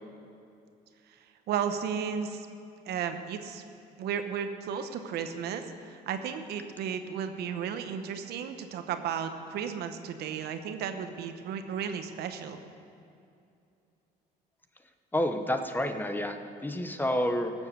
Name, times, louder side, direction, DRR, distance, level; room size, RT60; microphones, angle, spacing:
voice 1, 1.1-2.5 2.9-3.6 4.0-12.6, right 7 dB, 75° right, 8 dB, 1.0 m, -34 dB
voice 2, 15.1-17.5, left 1 dB, 10° left, 7 dB, 0.8 m, -29 dB
15.0 x 7.4 x 6.7 m, 2.6 s
cardioid pair, 110°, 17 cm